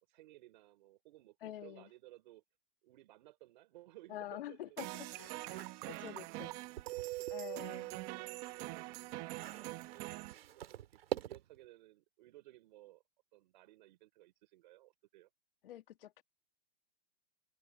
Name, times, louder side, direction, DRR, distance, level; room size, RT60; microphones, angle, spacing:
voice 1, 0.1-2.4 2.8-4.9 5.3-7.6 8.0-9.1 9.4-13.0 13.3-15.3, right 17 dB, 50° right, 4.9 m, -60 dB
voice 2, 1.4-1.9 4.1-6.5 7.3-7.9 15.6-16.2, left 13 dB, 60° left, 1.8 m, -47 dB
sound 1, 4.8-10.3, right 21 dB, 25° right, 1.1 m, -43 dB
sound 2, 5.2-7.4 7.8-11.6, right 11 dB, 70° right, 3.1 m, -47 dB
open air
hypercardioid pair, 160°, 31 cm